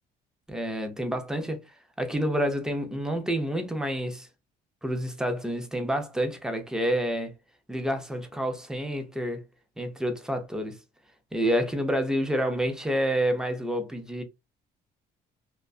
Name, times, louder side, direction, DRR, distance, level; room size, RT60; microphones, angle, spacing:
voice 1, 0.5-1.6 2.0-4.3 4.8-7.3 7.7-9.4 9.8-10.8 11.3-14.2, equal, 5° right, 0.6 m, -28 dB
2.4 x 2.1 x 2.4 m
cardioid pair, 110°, 17 cm